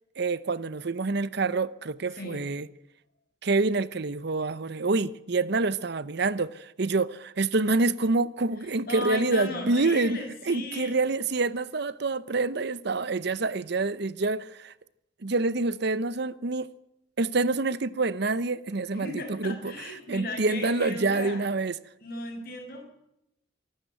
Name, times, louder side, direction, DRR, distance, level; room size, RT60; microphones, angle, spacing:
voice 1, 0.2-2.7 3.4-10.2 10.5-14.7 15.2-16.7 17.2-19.7 20.1-21.8, right 3 dB, 55° right, 0.7 m, -27 dB
voice 2, 2.2-2.5 8.9-10.9 18.9-21.4 22.0-22.8, left 1 dB, 50° left, 6.8 m, -36 dB
24.0 x 12.5 x 9.2 m
head